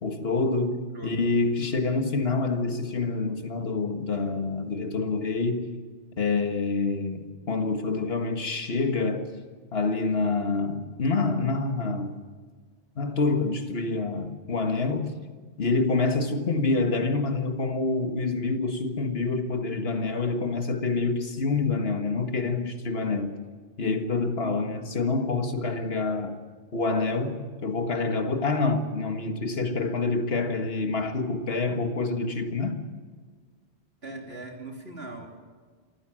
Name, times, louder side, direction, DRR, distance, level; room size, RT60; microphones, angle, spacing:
voice 1, 0.0-5.7 6.2-9.3 9.7-12.2 13.0-15.1 15.6-23.4 23.8-26.4 26.7-32.8, left 3 dB, 60° left, 1.9 m, -27 dB
voice 2, 0.9-1.3 1.6-1.7 24.4-24.6 34.0-35.3, right 2 dB, 65° right, 3.6 m, -40 dB
26.5 x 15.0 x 7.6 m
omnidirectional pair, 1.1 m